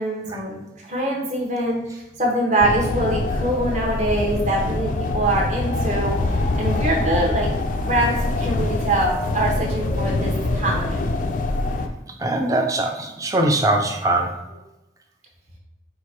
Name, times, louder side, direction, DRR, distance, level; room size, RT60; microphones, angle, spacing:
voice 1, 0.0-6.2 6.6-7.5 7.8-11.0, right 1 dB, 40° right, -2 dB, 0.9 m, -24 dB
sound 1, 2.6-11.9, left 2 dB, 45° left, 0.3 m, -24 dB
voice 2, 12.2-14.4, right 1 dB, 20° right, 3 dB, 0.4 m, -21 dB
4.6 x 2.1 x 4.3 m, 0.96 s
head